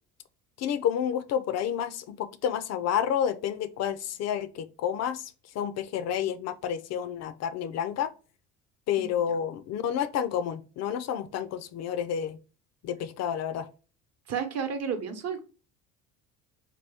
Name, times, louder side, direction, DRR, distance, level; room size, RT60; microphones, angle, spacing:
voice 1, 0.6-8.1 8.9-12.4 12.8-13.7, left 9 dB, 50° left, 0.4 m, -30 dB
voice 2, 14.3-15.4, right 6 dB, 50° right, 0.9 m, -31 dB
2.8 x 2.2 x 3.4 m
supercardioid pair, 75°, 34 cm